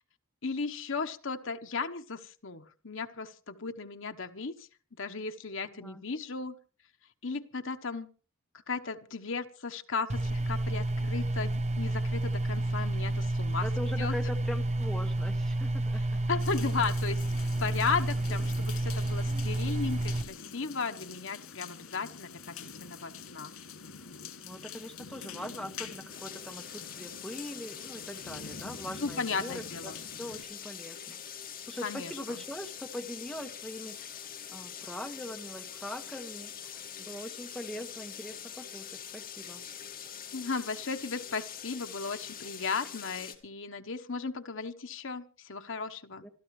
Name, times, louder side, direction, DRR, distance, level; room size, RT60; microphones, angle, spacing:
voice 1, 0.4-4.5 5.0-6.6 7.2-8.1 8.7-14.1 16.3-17.2 17.6-23.5 29.0-30.0 31.8-32.4 40.3-46.2, left 4 dB, 65° left, 6 dB, 1.2 m, -35 dB
sound 1, 10.1-20.2, right 1 dB, 35° right, 0.9 m, -30 dB
voice 2, 13.6-16.0 24.4-29.9 30.2-31.2 31.7-34.1 34.5-36.5 37.0-39.6 46.2-46.3, left 1 dB, 5° left, 3 dB, 1.6 m, -41 dB
sound 2, 16.4-30.4, left 6 dB, 85° left, 2.6 m, -46 dB
sound 3, 26.1-43.4, left 9 dB, 45° left, 2.2 m, -44 dB
26.0 x 13.0 x 3.3 m, 0.38 s
head